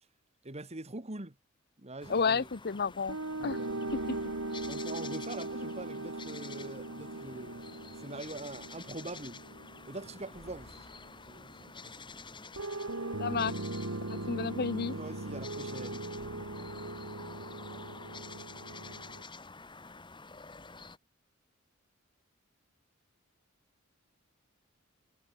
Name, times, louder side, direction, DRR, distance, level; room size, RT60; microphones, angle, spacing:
voice 1, 0.4-1.3 1.8-2.5 3.4-4.3 4.7-7.6 8.0-9.4 9.9-10.9 11.3-12.1 15.0-16.1, right 2 dB, 30° right, 2.3 m, -44 dB
sound 1, 2.0-21.0, left 4 dB, 25° left, 2.6 m, -49 dB
voice 2, 2.1-3.2 3.4-3.6 13.2-13.5 14.1-15.0, left 5 dB, 50° left, 0.8 m, -31 dB
sound 2, 3.1-11.2 12.5-19.2, right 2 dB, 80° right, 2.5 m, -39 dB
sound 3, 3.8-5.9 6.2-6.3 10.3-12.3 16.1-18.1, equal, ahead, 6.9 m, -59 dB
head